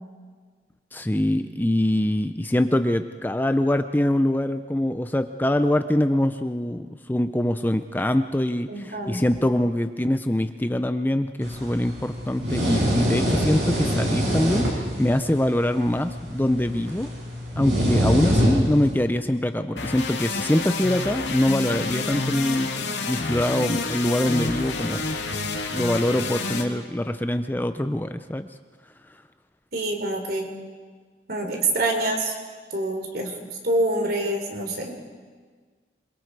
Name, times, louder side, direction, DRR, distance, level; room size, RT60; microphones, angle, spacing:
voice 1, 0.9-14.7 15.0-17.1 17.6-25.0 25.7-28.5, left 1 dB, 10° left, 9 dB, 0.5 m, -24 dB
voice 2, 8.7-9.3 29.7-30.5 31.3-32.3 32.7-33.4 33.6-34.9, right 2 dB, 55° right, 3 dB, 3.5 m, -26 dB
sound 1, 11.4-18.9, equal, 75° right, 7.8 m, -25 dB
sound 2, 19.8-26.6, left 3 dB, 90° left, 2.3 m, -29 dB
27.5 x 22.0 x 4.8 m, 1.5 s
head